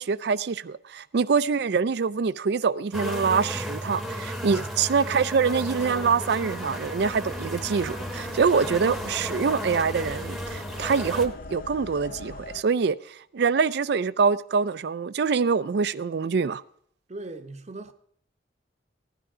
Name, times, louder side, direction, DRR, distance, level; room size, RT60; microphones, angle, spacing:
voice 1, 0.0-16.6, right 5 dB, 60° right, 0.4 m, -25 dB
sound 1, 2.9-12.6, left 3 dB, 50° left, 0.6 m, -44 dB
sound 2, 2.9-11.3, equal, ahead, 1.0 m, -34 dB
voice 2, 17.1-17.9, right 2 dB, 40° right, 0.8 m, -40 dB
15.5 x 10.0 x 4.9 m
head